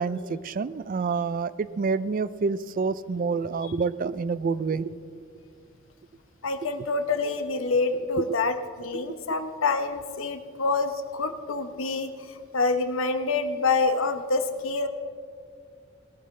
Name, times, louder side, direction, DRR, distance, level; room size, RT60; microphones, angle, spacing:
voice 1, 0.0-4.9 8.9-9.1, right 4 dB, 45° right, 17 dB, 0.3 m, -28 dB
voice 2, 6.4-12.1 12.5-14.9, left 3 dB, 80° left, 8 dB, 1.0 m, -26 dB
20.5 x 13.5 x 3.3 m, 2.2 s
head